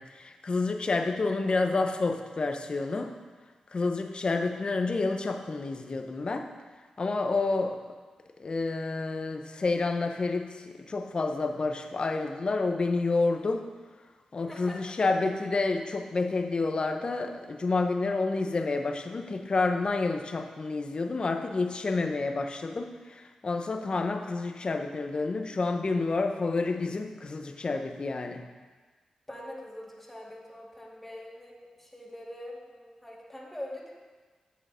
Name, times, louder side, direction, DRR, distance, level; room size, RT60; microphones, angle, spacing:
voice 1, 0.0-3.1 3.7-6.5 7.0-7.8 8.4-10.5 10.9-13.6 14.3-28.4, left 3 dB, 50° left, 6 dB, 0.9 m, -29 dB
voice 2, 14.4-15.0 29.3-34.0, left 1 dB, 10° left, -3 dB, 2.3 m, -43 dB
9.2 x 6.8 x 5.1 m, 1.4 s
cardioid pair, 55°, 2 cm